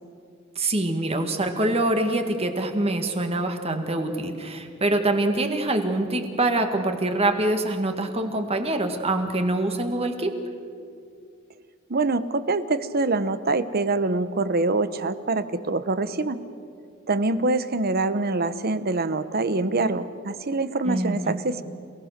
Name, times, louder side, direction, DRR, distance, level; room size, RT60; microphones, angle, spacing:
voice 1, 0.6-10.3 20.8-21.3, right 2 dB, 30° right, 5 dB, 1.9 m, -25 dB
voice 2, 11.9-16.4 17.1-21.6, right 3 dB, 45° right, 13 dB, 0.9 m, -25 dB
28.0 x 18.0 x 6.7 m, 2.4 s
head